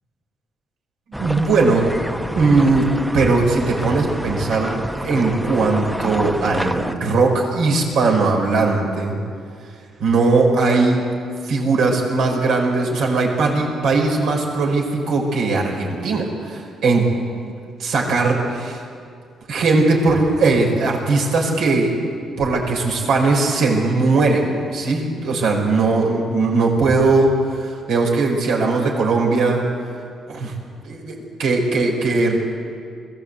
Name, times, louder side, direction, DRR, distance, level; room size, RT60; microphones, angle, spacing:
sound 1, 1.1-6.9, equal, 5° right, 0.9 m, -28 dB
voice 1, 1.2-1.8 2.3-9.2 10.0-11.0 11.4-17.1 17.4-17.5 17.8-18.8 19.5-22.0 22.4-29.6 30.3-30.5 30.8-32.4, right 3 dB, 80° right, 0 dB, 5.2 m, -19 dB
22.5 x 15.0 x 8.2 m, 2.3 s
cardioid pair, 90°, 0 cm